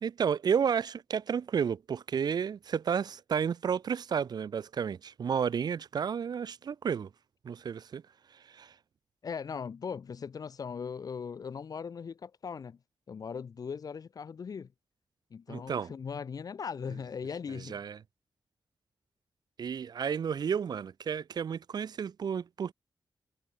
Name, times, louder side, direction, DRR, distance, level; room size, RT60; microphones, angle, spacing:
voice 1, 0.0-7.1 7.4-8.0 8.5-8.7 15.5-15.9 17.7-18.0 19.6-22.7, right 7 dB, 65° right, 1.4 m, -31 dB
voice 2, 9.2-12.8 13.1-14.7 15.3-17.8, left 6 dB, 55° left, 2.6 m, -39 dB
wide cardioid pair, 170°, 7 cm